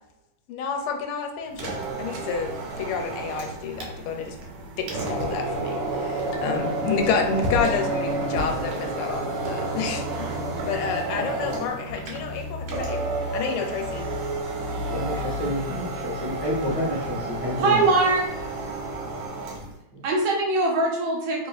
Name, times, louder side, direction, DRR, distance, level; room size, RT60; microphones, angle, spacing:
voice 1, 0.5-4.4 4.8-10.3 10.7-14.1, left 6 dB, 85° left, 3 dB, 1.5 m, -29 dB
sound 1, 1.5-19.7, right 2 dB, 90° right, 1.6 m, -30 dB
voice 2, 14.9-17.8 19.9-20.0, equal, 20° right, -8 dB, 0.9 m, -29 dB
voice 3, 17.6-18.3 20.0-21.5, right 2 dB, 75° right, -1 dB, 1.3 m, -22 dB
3.4 x 2.9 x 2.3 m, 0.87 s
omnidirectional pair, 2.4 m